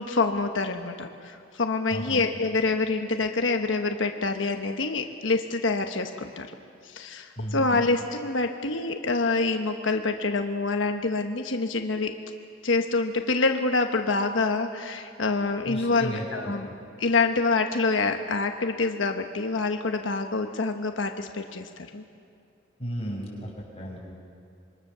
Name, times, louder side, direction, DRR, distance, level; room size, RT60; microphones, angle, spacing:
voice 1, 0.0-6.5 6.8-12.1 12.6-16.7 17.0-22.0, left 3 dB, 85° left, 5 dB, 1.1 m, -26 dB
voice 2, 1.9-2.3 7.4-7.9 15.6-16.5 22.8-24.0, equal, 35° left, -2 dB, 6.2 m, -34 dB
26.5 x 23.5 x 6.8 m, 2.3 s
head